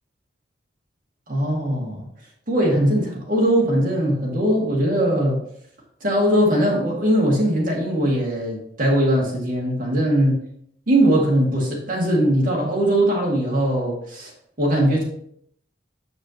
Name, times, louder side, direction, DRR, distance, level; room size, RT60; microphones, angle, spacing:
voice 1, 1.3-2.0 2.5-5.4 6.0-10.4 10.9-14.3 14.6-15.0, right 1 dB, 50° right, -2 dB, 2.1 m, -20 dB
7.4 x 6.7 x 2.9 m, 0.68 s
head